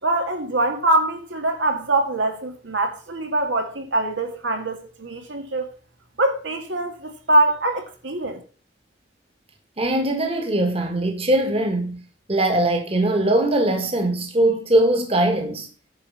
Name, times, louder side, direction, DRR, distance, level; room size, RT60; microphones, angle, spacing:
voice 1, 0.0-5.7 6.2-8.4, right 2 dB, 90° right, 2.5 m, -23 dB
voice 2, 9.8-12.0 12.3-15.7, right 1 dB, 30° right, 1.6 m, -21 dB
10.5 x 4.8 x 7.3 m
head